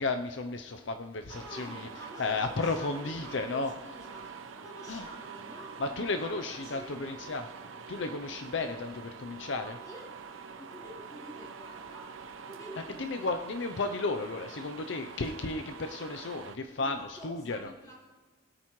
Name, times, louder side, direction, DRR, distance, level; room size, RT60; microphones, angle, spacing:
voice 1, 0.0-1.9 2.2-3.7 4.9-5.0 5.8-7.5 7.9-9.8 13.0-17.7, left 3 dB, 65° left, 7 dB, 0.6 m, -33 dB
sound 1, 1.3-16.6, right 5 dB, 85° right, 0.8 m, -46 dB
voice 2, 1.4-7.2 9.6-10.1 10.6-12.1 12.5-13.3 16.7-17.9, equal, 20° left, -5 dB, 3.6 m, -48 dB
21.5 x 8.8 x 3.1 m, 1.3 s
head